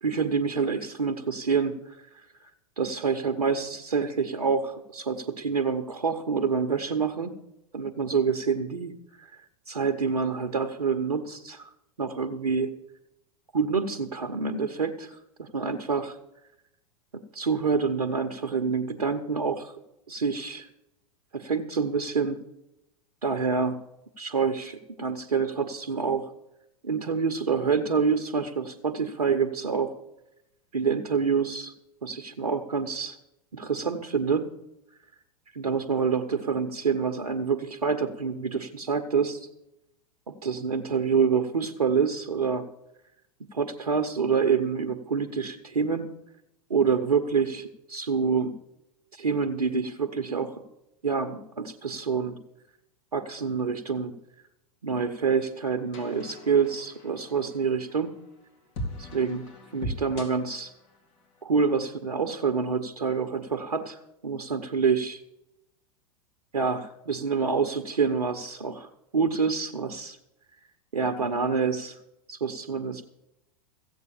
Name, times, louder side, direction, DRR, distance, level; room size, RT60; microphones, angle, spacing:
voice 1, 0.0-2.5 2.8-7.3 7.7-11.7 12.0-12.7 13.5-16.2 17.3-19.7 20.1-20.7 21.3-22.4 23.2-23.8 24.2-26.3 26.8-29.9 30.7-31.7 32.0-33.2 33.5-34.5 35.5-39.5 40.3-42.7 43.5-46.1 46.7-48.5 49.1-50.6 51.0-52.4 53.1-54.1 54.8-58.1 59.0-59.5 59.7-60.7 61.4-65.2 66.5-68.9 69.1-70.2 70.9-72.0 72.3-73.0, right 5 dB, 90° right, 7 dB, 0.9 m, -27 dB
sound 1, 54.9-61.4, equal, 50° left, 3.6 m, -41 dB
15.0 x 8.1 x 7.1 m, 0.87 s
hypercardioid pair, 100°, 19 cm